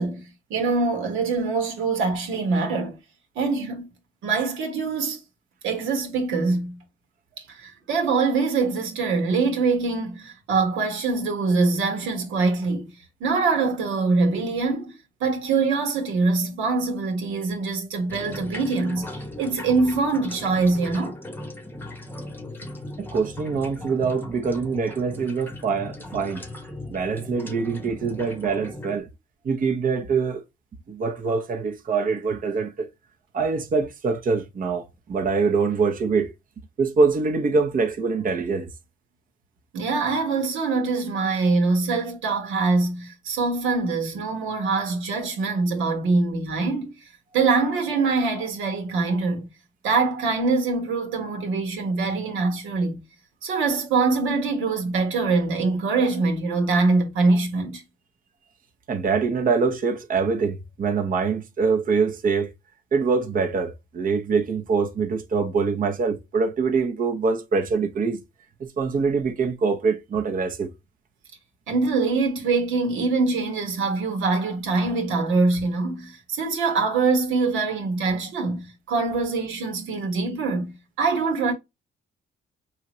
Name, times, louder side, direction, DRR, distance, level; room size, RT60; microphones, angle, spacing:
voice 1, 0.0-3.0 3.3-3.9 4.2-5.2 5.6-6.8 7.4-12.9 13.2-14.9 15.2-19.1 19.4-21.2 39.7-46.9 47.3-49.5 49.8-53.0 53.4-57.8 71.7-81.5, right 4 dB, 85° right, 1.4 m, -24 dB
sound 1, 18.1-29.0, left 1 dB, 10° left, 0.8 m, -38 dB
voice 2, 23.1-26.4 26.9-29.1 29.4-30.4 30.9-32.9 33.3-36.3 36.8-38.7 58.9-62.5 62.9-68.2 68.6-70.7, right 4 dB, 45° right, 0.8 m, -24 dB
4.9 x 2.9 x 3.0 m
cardioid pair, 90°, 20 cm